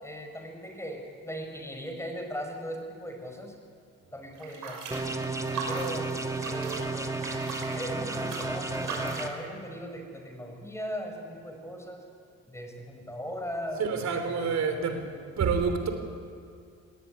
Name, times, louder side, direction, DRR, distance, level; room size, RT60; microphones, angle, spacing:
voice 1, 0.0-3.5 4.1-5.0 5.7-6.1 6.4-7.1 7.7-12.0 12.5-15.3, equal, 10° left, 3 dB, 5.1 m, -38 dB
sound 1, 4.3-9.4, right 4 dB, 80° right, 5.9 m, -39 dB
sound 2, 4.9-9.3, right 3 dB, 10° right, 1.8 m, -32 dB
voice 2, 13.8-15.0 15.4-15.9, right 5 dB, 60° right, 7 dB, 3.6 m, -27 dB
19.0 x 18.5 x 9.8 m, 2.3 s
cardioid pair, 90°, 30 cm